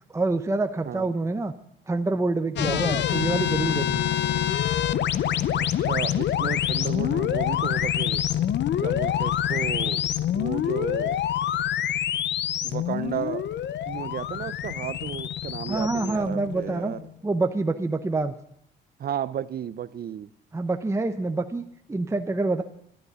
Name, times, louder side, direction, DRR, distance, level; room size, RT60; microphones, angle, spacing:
voice 1, 0.1-1.5 1.9-4.1 15.7-17.0 17.2-18.3 20.5-22.6, right 3 dB, 15° right, 0.7 m, -26 dB
sound 1, 2.6-17.1, left 10 dB, 65° left, 0.7 m, -26 dB
voice 2, 5.6-8.2 8.8-11.2 12.6-13.6 13.9-17.1 19.0-20.3, right 9 dB, 50° right, 0.6 m, -33 dB
13.5 x 11.0 x 7.0 m
cardioid pair, 90°, 20 cm